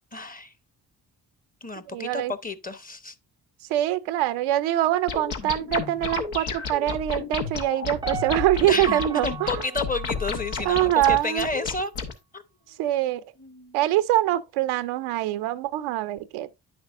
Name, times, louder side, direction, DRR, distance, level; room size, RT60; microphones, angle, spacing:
voice 1, 0.1-0.5 1.6-3.2 8.7-11.9 12.3-12.4 13.4-13.8, left 3 dB, 15° left, 0.8 m, -31 dB
voice 2, 1.9-2.3 3.7-9.5 10.6-11.5 12.8-13.2 13.7-16.6, right 14 dB, 75° right, 0.6 m, -24 dB
sound 1, 5.1-12.1, left 5 dB, 80° left, 1.1 m, -32 dB
Piano, 8.0-11.1 11.5-11.6, right 7 dB, 10° right, 0.4 m, -36 dB
9.3 x 6.1 x 2.5 m
hypercardioid pair, 40°, 50 cm